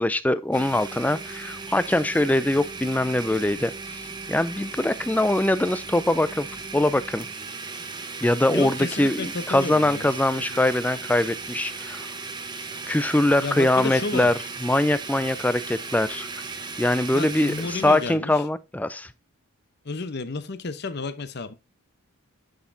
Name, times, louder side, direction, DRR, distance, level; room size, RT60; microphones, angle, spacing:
voice 1, 0.0-6.5 6.7-7.3 8.2-12.1 12.9-14.3 14.6-16.4 16.8-19.1, left 1 dB, 5° left, 0.3 m, -23 dB
Domestic sounds home sounds, 0.5-18.2, right 4 dB, 20° right, 0.9 m, -36 dB
voice 2, 8.5-10.1 10.4-10.6 13.4-14.3 17.1-18.4 19.8-21.5, left 3 dB, 50° left, 0.8 m, -31 dB
9.5 x 6.2 x 2.7 m
head